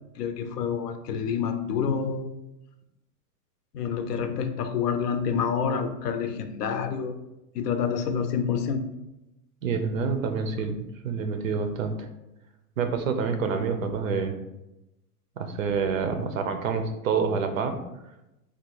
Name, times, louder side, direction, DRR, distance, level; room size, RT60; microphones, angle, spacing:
voice 1, 0.2-2.3 3.7-7.2 7.5-8.8, left 6 dB, 75° left, 8 dB, 0.7 m, -28 dB
voice 2, 9.6-12.1 12.8-14.4 15.4-17.8, right 5 dB, 60° right, 7 dB, 0.6 m, -27 dB
4.1 x 2.3 x 4.5 m, 0.94 s
supercardioid pair, 175°, 48 cm